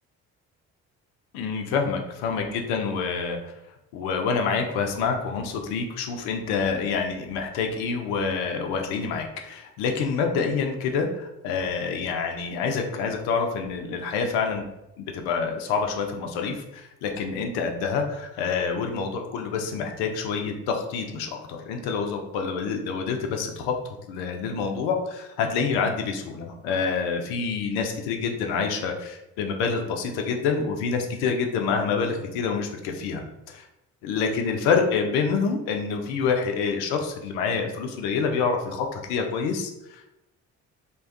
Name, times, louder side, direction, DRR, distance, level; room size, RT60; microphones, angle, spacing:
voice 1, 1.3-3.5 3.9-14.6 15.0-23.7 24.1-33.6 34.0-40.1, left 5 dB, 70° left, 4 dB, 0.6 m, -27 dB
2.5 x 2.2 x 2.4 m, 0.89 s
hypercardioid pair, 45°, 40 cm